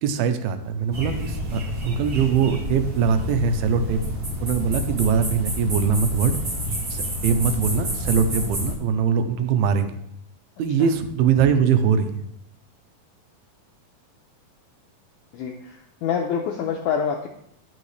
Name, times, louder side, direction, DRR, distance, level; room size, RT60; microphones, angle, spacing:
voice 1, 0.0-4.0 4.4-6.4 6.9-10.0 10.6-12.2, right 6 dB, 85° right, 8 dB, 2.5 m, -22 dB
sound 1, 0.9-8.7, equal, 35° right, 1.8 m, -29 dB
voice 2, 15.3-17.3, left 7 dB, 85° left, 1 dB, 1.7 m, -26 dB
10.5 x 5.7 x 3.2 m, 0.74 s
omnidirectional pair, 4.2 m